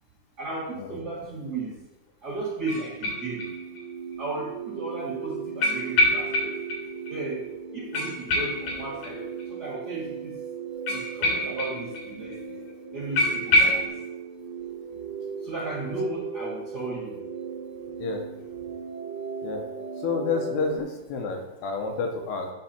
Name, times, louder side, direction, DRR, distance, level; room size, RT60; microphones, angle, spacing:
voice 1, 0.4-1.8 2.2-3.4 4.2-6.6 7.1-7.4 7.7-10.3 10.9-12.6 12.9-13.9 15.4-17.2, right 3 dB, 35° right, -8 dB, 1.7 m, -34 dB
sound 1, 2.6-20.8, right 6 dB, 80° right, 2.5 m, -37 dB
sound 2, 2.7-3.8 4.1-4.2 5.6-6.8 7.1-7.2 7.4-7.5 7.9-9.4 10.9-12.1 12.3-12.4 12.7-12.8 13.2-13.9, left 1 dB, 60° left, 2.4 m, -25 dB
voice 2, 20.0-22.5, left 4 dB, 85° left, 3 dB, 2.9 m, -29 dB
8.7 x 4.9 x 4.2 m, 1.0 s
omnidirectional pair, 4.7 m